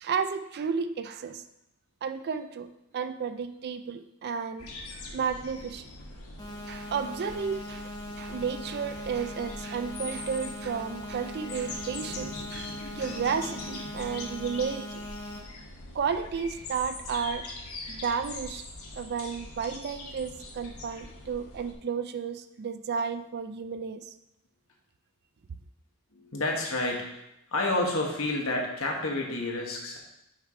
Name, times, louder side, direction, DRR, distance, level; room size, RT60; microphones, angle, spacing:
voice 1, 0.0-1.4 2.0-2.7 2.9-4.7 5.1-5.9 6.7-7.9 8.2-15.0 15.9-17.4 17.9-18.7 18.9-24.1, right 6 dB, 50° right, 11 dB, 0.4 m, -32 dB
sound 1, 4.6-21.7, left 2 dB, 85° left, 1.3 m, -42 dB
sound 2, 6.4-15.4, left 1 dB, 20° left, 1.1 m, -40 dB
voice 2, 26.1-27.1 27.5-30.0, left 2 dB, 65° left, 0 dB, 1.5 m, -29 dB
6.4 x 4.8 x 4.9 m, 0.86 s
head